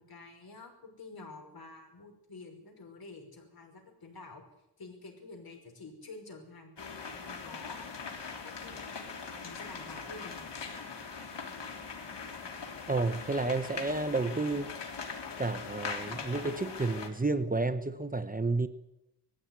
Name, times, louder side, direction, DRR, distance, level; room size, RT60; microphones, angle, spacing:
voice 1, 0.0-4.4 4.8-7.9 8.4-8.9 9.4-10.8, left 3 dB, 60° left, 3 dB, 5.8 m, -49 dB
sound 1, 6.8-17.1, left 5 dB, 90° left, 3.6 m, -41 dB
voice 2, 12.9-14.8 15.4-18.7, right 3 dB, 20° right, 10 dB, 1.0 m, -31 dB
20.0 x 15.5 x 9.6 m, 0.88 s
wide cardioid pair, 125°, 41 cm